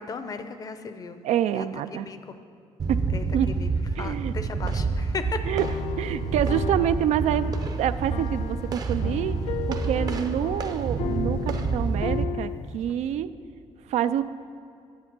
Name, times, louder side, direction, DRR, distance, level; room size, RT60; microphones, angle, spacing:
voice 1, 0.0-1.2 1.5-2.4 3.1-3.7 4.0-5.4, left 5 dB, 35° left, 9 dB, 0.5 m, -36 dB
voice 2, 1.2-2.1 2.9-3.0 3.3-3.5 4.0-4.3 5.5-5.7 6.0-7.5 7.8-9.4 9.7-13.3 13.9-14.2, right 10 dB, 80° right, 13 dB, 0.4 m, -27 dB
sound 1, 2.8-12.2, right 4 dB, 35° right, 0.6 m, -28 dB
sound 2, 5.5-12.9, left 10 dB, 80° left, 0.4 m, -35 dB
10.5 x 8.0 x 6.0 m, 2.5 s
cardioid pair, 165°, 11 cm